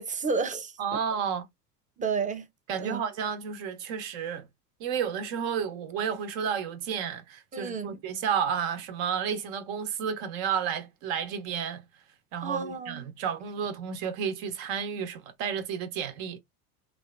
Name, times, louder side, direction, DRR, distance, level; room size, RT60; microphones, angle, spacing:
voice 1, 0.0-0.7 2.0-2.5 2.7-3.0 7.5-8.0 12.4-13.0, right 5 dB, 15° right, 0.6 m, -31 dB
voice 2, 0.8-1.4 2.7-4.4 4.8-11.8 12.3-16.4, right 7 dB, 65° right, 1.0 m, -31 dB
3.3 x 2.2 x 2.4 m
hypercardioid pair, 95°, 44 cm